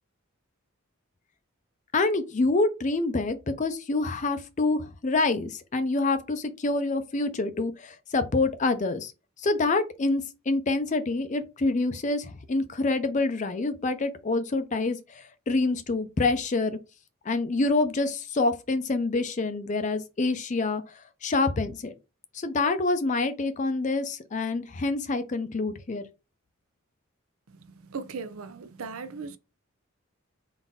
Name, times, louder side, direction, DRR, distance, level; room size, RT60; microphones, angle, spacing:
voice 1, 1.9-9.1 9.4-16.8 17.3-20.8 21.2-21.9 22.3-26.0, left 3 dB, 35° left, 0.5 m, -26 dB
voice 2, 27.8-29.4, right 4 dB, 80° right, 0.5 m, -37 dB
3.9 x 2.5 x 3.6 m
head